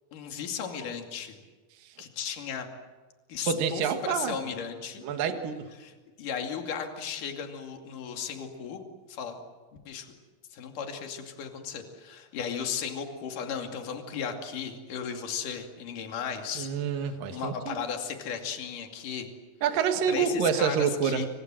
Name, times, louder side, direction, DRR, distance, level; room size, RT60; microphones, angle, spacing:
voice 1, 0.1-1.4 2.0-2.7 3.3-5.0 5.8-5.9 6.2-8.8 9.1-9.4 9.9-10.1 10.5-19.3 20.1-21.3, left 7 dB, 60° left, 4 dB, 4.0 m, -35 dB
voice 2, 3.5-4.4 5.0-5.7 16.6-17.8 19.6-21.2, right 7 dB, 70° right, 6 dB, 3.3 m, -27 dB
29.0 x 26.0 x 7.7 m, 1.3 s
omnidirectional pair, 4.3 m